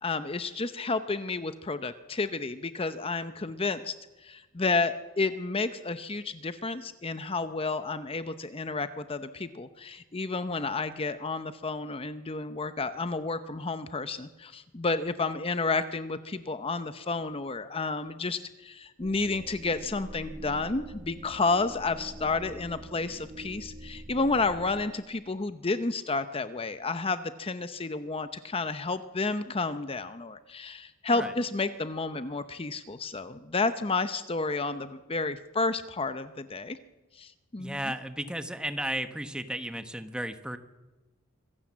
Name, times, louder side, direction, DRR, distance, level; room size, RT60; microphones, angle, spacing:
voice 1, 0.0-3.9 4.2-36.8 37.1-37.8, left 3 dB, 30° left, 11 dB, 0.7 m, -31 dB
sound 1, 19.0-24.9, right 1 dB, 30° right, 1.4 m, -45 dB
voice 2, 37.6-40.6, right 1 dB, 5° right, 9 dB, 1.1 m, -34 dB
25.5 x 16.5 x 7.4 m, 1.2 s
head